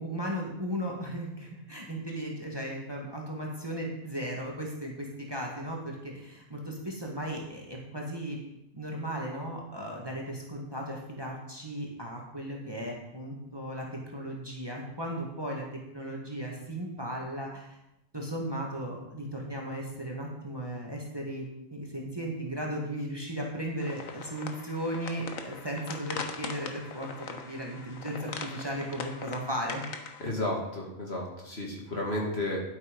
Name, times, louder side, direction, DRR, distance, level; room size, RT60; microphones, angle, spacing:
voice 1, 0.0-8.4 8.7-13.9 14.1-15.7 15.9-17.8 18.1-29.8, right 1 dB, 20° right, -1 dB, 2.0 m, -36 dB
sound 1, 23.8-30.3, left 5 dB, 75° left, 1.5 m, -41 dB
voice 2, 30.2-32.6, left 1 dB, 50° left, -1 dB, 2.5 m, -32 dB
11.0 x 8.3 x 5.4 m, 0.86 s
omnidirectional pair, 1.4 m